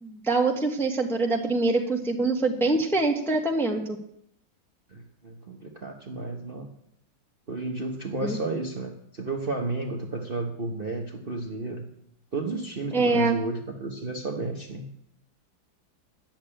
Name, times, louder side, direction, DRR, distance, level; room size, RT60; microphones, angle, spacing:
voice 1, 0.0-3.8 8.2-8.4 12.9-13.4, right 3 dB, ahead, 1 dB, 1.1 m, -24 dB
voice 2, 4.9-6.7 7.5-11.8 12.3-14.9, right 2 dB, 35° right, 1 dB, 1.0 m, -32 dB
10.5 x 7.4 x 8.8 m, 0.71 s
omnidirectional pair, 2.2 m